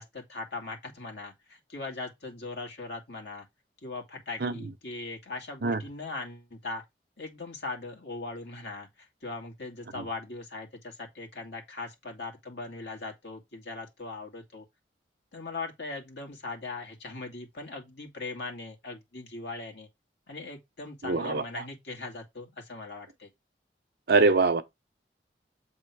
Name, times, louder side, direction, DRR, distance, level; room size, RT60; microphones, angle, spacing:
voice 1, 0.0-3.5 3.8-6.8 7.2-14.6 15.3-19.9 20.3-23.3, left 3 dB, 70° left, 2.1 m, -40 dB
voice 2, 21.0-21.4 24.1-24.6, right 3 dB, 60° right, 0.8 m, -23 dB
7.6 x 3.7 x 4.7 m
head